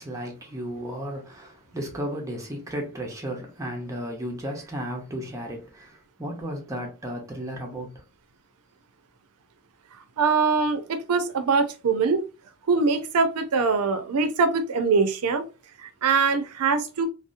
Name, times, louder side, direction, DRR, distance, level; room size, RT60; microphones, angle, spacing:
voice 1, 0.0-7.9, equal, 15° right, 0.6 m, -34 dB
voice 2, 10.2-12.2 12.7-15.4 15.8-17.1, right 4 dB, 90° right, 0.5 m, -23 dB
2.7 x 2.0 x 2.5 m
head